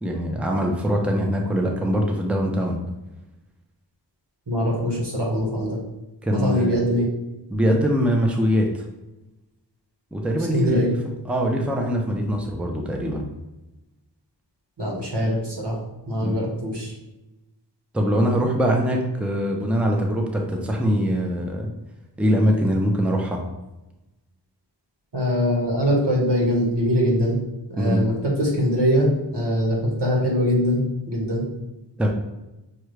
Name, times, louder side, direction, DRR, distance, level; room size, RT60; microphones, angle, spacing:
voice 1, 0.0-2.8 6.2-6.7 7.5-8.8 10.1-10.9 11.3-13.2 16.2-16.4 17.9-21.7 22.2-23.4 27.8-28.0 32.0-32.1, equal, 5° right, 1 dB, 0.6 m, -22 dB
voice 2, 4.5-5.8 6.3-7.1 10.5-10.9 14.8-15.8 16.1-16.9 25.1-27.4 27.7-31.4, equal, 70° right, -3 dB, 1.4 m, -22 dB
6.0 x 2.3 x 3.2 m, 1.0 s
wide cardioid pair, 40°, 43 cm